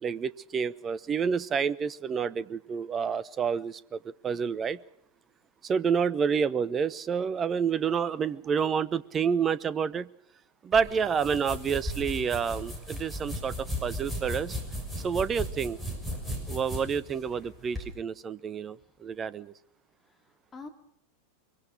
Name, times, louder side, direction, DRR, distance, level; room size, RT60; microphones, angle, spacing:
voice 1, 0.0-4.8 5.6-10.1 10.6-14.6 15.0-15.8 16.5-19.5, right 6 dB, 25° right, 19 dB, 0.8 m, -29 dB
sound 1, 10.7-17.9, equal, 5° right, 6.6 m, -36 dB
voice 2, 15.2-15.5 20.1-20.7, left 4 dB, 20° left, 4 dB, 2.8 m, -48 dB
23.5 x 23.0 x 5.1 m, 0.73 s
figure-of-eight pair, 90°, 0 cm